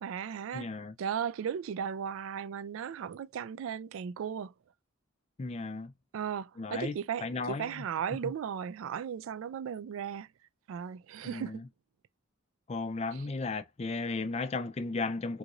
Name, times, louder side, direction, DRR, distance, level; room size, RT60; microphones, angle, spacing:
voice 1, 0.0-0.7 1.0-4.5 6.1-10.3 10.7-11.6 13.1-13.2, right 8 dB, 75° right, 0.3 m, -36 dB
voice 2, 0.5-0.9 5.4-5.9 6.6-7.0 7.2-7.8 8.2-8.3 11.2-11.6 12.7-15.4, left 3 dB, 30° left, 0.3 m, -35 dB
3.7 x 2.5 x 2.9 m
head